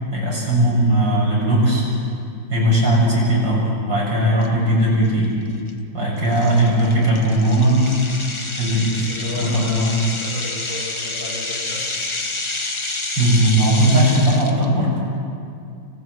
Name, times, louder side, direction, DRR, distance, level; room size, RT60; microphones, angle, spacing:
voice 1, 0.1-1.9 2.5-5.3 5.9-7.8 8.6-9.9 13.2-14.9, right 1 dB, 75° right, -5 dB, 7.6 m, -18 dB
sound 1, 4.4-4.5 5.1-5.2 5.7-5.8 6.3-14.6, left 2 dB, 20° left, 0.8 m, -29 dB
voice 2, 9.1-12.3, left 1 dB, 65° left, -6 dB, 5.9 m, -32 dB
30.0 x 28.5 x 3.3 m, 2.4 s
omnidirectional pair, 2.0 m